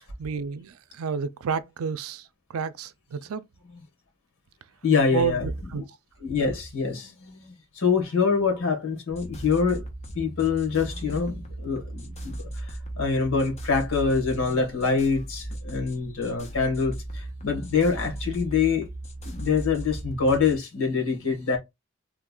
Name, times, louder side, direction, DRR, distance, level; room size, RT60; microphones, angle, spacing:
voice 1, 0.2-2.2 2.5-3.4 5.1-5.8, right 6 dB, 90° right, 0.4 m, -30 dB
voice 2, 4.8-5.5 5.7-5.8 6.2-9.8 10.1-18.9 19.2-21.6, left 5 dB, 75° left, 1.5 m, -25 dB
sound 1, 9.1-20.6, right 1 dB, 30° left, 0.8 m, -37 dB
3.4 x 2.3 x 3.6 m
head